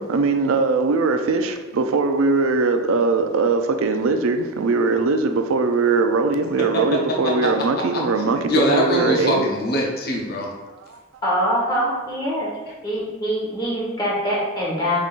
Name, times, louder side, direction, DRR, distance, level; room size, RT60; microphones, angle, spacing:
voice 1, 0.0-9.5 10.8-11.0, right 3 dB, 70° right, 0.4 m, -21 dB
voice 2, 8.2-10.5, equal, 45° left, 0.7 m, -22 dB
voice 3, 11.2-12.5 12.8-15.0, equal, 20° left, 1.2 m, -23 dB
5.2 x 3.7 x 2.4 m
head